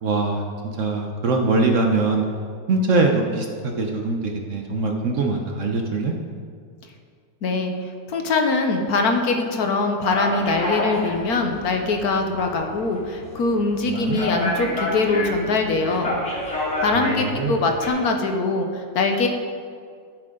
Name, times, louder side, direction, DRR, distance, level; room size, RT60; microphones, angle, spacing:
voice 1, 0.0-2.3 2.7-6.1 13.9-14.2 16.9-17.6, right 3 dB, 55° right, 2 dB, 1.0 m, -23 dB
voice 2, 7.4-16.2 16.8-19.3, left 3 dB, 65° left, 4 dB, 1.3 m, -22 dB
sound 1, 10.0-17.9, left 2 dB, 40° left, 2.4 m, -29 dB
14.5 x 7.6 x 3.8 m, 2.2 s
omnidirectional pair, 1.9 m